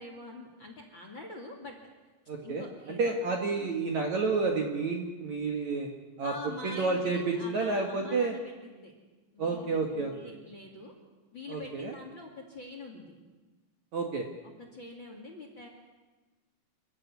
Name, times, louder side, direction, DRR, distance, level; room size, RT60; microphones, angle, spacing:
voice 1, 0.0-1.8 2.4-3.2 6.2-8.9 9.3-10.9 11.3-13.1 14.4-15.7, left 2 dB, 35° left, 2 dB, 2.3 m, -44 dB
voice 2, 2.3-5.9 6.2-6.3 6.6-8.4 9.4-10.3 11.5-12.0 13.9-14.3, right 4 dB, 55° right, 2 dB, 2.3 m, -30 dB
26.5 x 14.5 x 9.6 m, 1.2 s
omnidirectional pair, 5.2 m